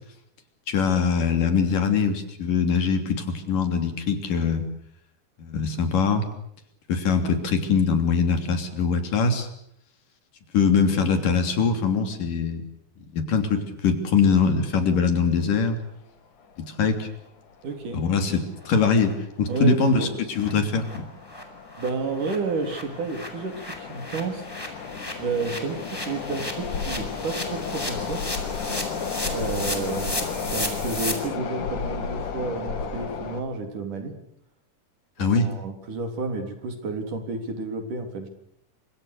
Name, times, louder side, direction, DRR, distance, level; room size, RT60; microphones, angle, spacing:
voice 1, 0.7-4.7 5.4-6.2 6.9-9.5 10.5-12.6 13.1-15.8 16.8-17.1 17.9-21.0 35.2-35.5, left 5 dB, 85° left, 7 dB, 4.8 m, -22 dB
sound 1, 16.5-16.6 16.9-17.0 17.7-17.9 18.2-18.4 18.9-19.3 19.8-33.4, left 5 dB, 70° left, 4.0 m, -33 dB
voice 2, 17.6-18.0 19.5-20.2 21.8-24.5 25.2-28.2 29.3-34.2 35.2-38.3, right 4 dB, 75° right, 6 dB, 5.2 m, -31 dB
sound 2, 18.1-18.2 18.6-18.7 19.0-19.1 19.5-19.6 19.9-20.0 20.3-20.5 20.8-21.0 21.2-31.1, left 1 dB, 5° left, 5.0 m, -35 dB
29.0 x 26.0 x 6.8 m, 0.73 s
omnidirectional pair, 3.7 m